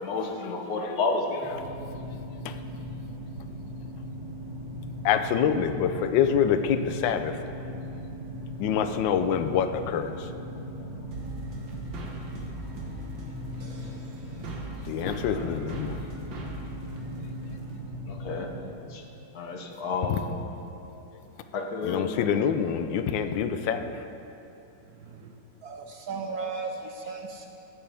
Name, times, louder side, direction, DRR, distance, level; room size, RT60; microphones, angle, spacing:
voice 1, 0.0-1.5 15.3-15.6 18.1-18.5 18.9-19.0 19.3-20.3 21.5-22.3, left 4 dB, 60° left, 2 dB, 1.3 m, -31 dB
sound 1, 1.4-18.6, equal, 15° right, 2.4 m, -39 dB
voice 2, 5.0-7.4 8.6-10.3 14.8-16.0 20.1-20.2 21.8-23.9, left 8 dB, 80° left, 9 dB, 1.3 m, -26 dB
sound 2, 11.1-17.8, right 3 dB, 85° right, 2.1 m, -41 dB
voice 3, 24.9-25.3 25.6-27.5, right 4 dB, 70° right, 3 dB, 1.0 m, -36 dB
18.0 x 7.3 x 3.4 m, 2.8 s
omnidirectional pair, 2.0 m